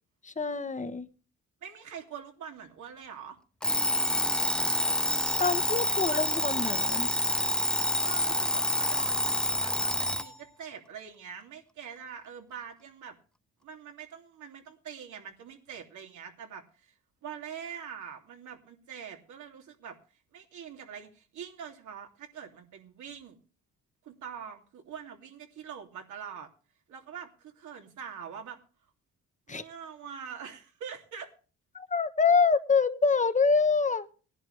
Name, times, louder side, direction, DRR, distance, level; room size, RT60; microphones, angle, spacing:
voice 1, 0.3-1.1 5.4-7.1 29.5-29.6 31.7-34.1, left 5 dB, 25° left, 11 dB, 1.2 m, -26 dB
voice 2, 1.6-3.4 5.4-6.3 7.8-13.2 13.6-16.9 17.2-20.0 20.3-23.4 24.0-26.5 26.9-28.6 29.5-31.3, right 7 dB, 75° right, 3 dB, 3.0 m, -44 dB
Alarm, 3.6-10.3, left 1 dB, 5° left, 0.5 m, -27 dB
18.0 x 11.0 x 3.3 m, 0.36 s
cardioid pair, 90°, 30 cm